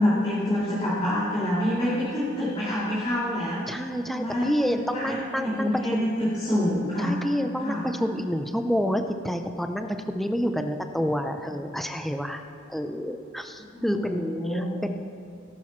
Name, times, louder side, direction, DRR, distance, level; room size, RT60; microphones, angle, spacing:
voice 1, 0.0-7.2 7.6-7.8 13.7-14.7, left 1 dB, 30° left, -10 dB, 3.0 m, -27 dB
voice 2, 3.7-5.7 6.0-6.1 7.0-12.4 12.7-14.2 14.5-14.9, equal, ahead, 6 dB, 0.6 m, -28 dB
17.5 x 11.5 x 3.2 m, 2.5 s
head